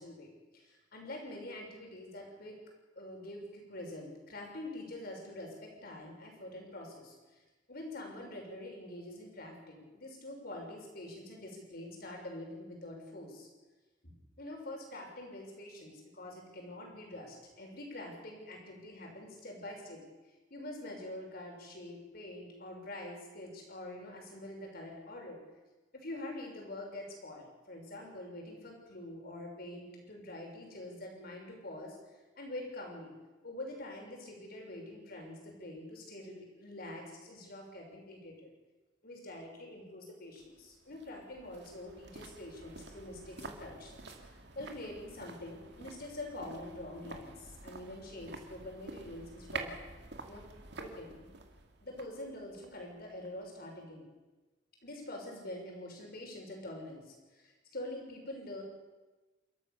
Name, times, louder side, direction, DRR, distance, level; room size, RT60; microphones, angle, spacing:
voice 1, 0.0-2.6 3.0-13.5 14.0-20.0 20.5-25.4 25.9-33.1 33.4-38.5 39.0-44.1 44.3-49.7 50.2-50.4 50.8-51.3 51.8-54.1 54.8-58.6, left 1 dB, 55° left, 1 dB, 6.1 m, -45 dB
sound 1, 40.4-53.5 53.8-53.9, right 3 dB, 65° right, 2.3 m, -49 dB
29.0 x 13.5 x 7.0 m, 1.2 s
head